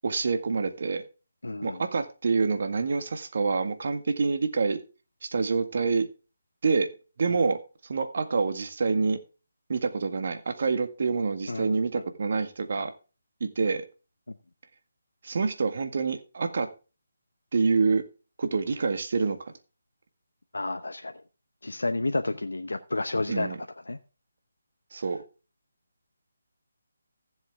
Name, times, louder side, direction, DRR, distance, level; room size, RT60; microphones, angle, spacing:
voice 1, 0.0-1.0 1.6-4.8 5.2-6.1 6.6-6.9 7.2-7.6 7.9-9.2 9.7-12.9 13.4-13.8 15.2-16.7 17.5-18.0 18.4-19.4 23.3-23.6 24.9-25.2, right 4 dB, 55° right, 1.8 m, -26 dB
voice 2, 1.4-1.8 7.3-7.4 11.5-11.8 20.5-21.1 21.6-23.6 23.9-24.0, left 2 dB, 85° left, 0.9 m, -30 dB
15.5 x 7.4 x 3.6 m
figure-of-eight pair, 155°, 0 cm